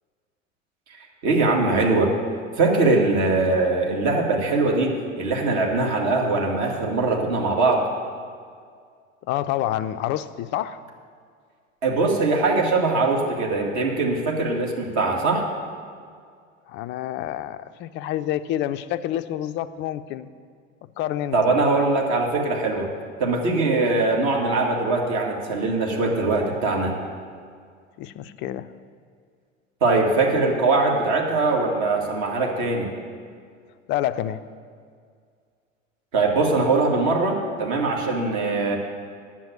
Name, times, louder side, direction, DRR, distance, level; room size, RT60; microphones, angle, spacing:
voice 1, 1.2-2.1 2.6-7.8 11.8-15.4 21.3-22.9 23.2-26.9 29.8-32.9 36.1-38.8, right 3 dB, 50° right, 0 dB, 2.2 m, -21 dB
voice 2, 9.2-10.8 16.7-20.3 21.0-21.4 28.0-28.7 33.9-34.4, left 12 dB, 30° left, 11 dB, 0.4 m, -28 dB
9.7 x 7.4 x 8.6 m, 2.1 s
figure-of-eight pair, 80°, 38 cm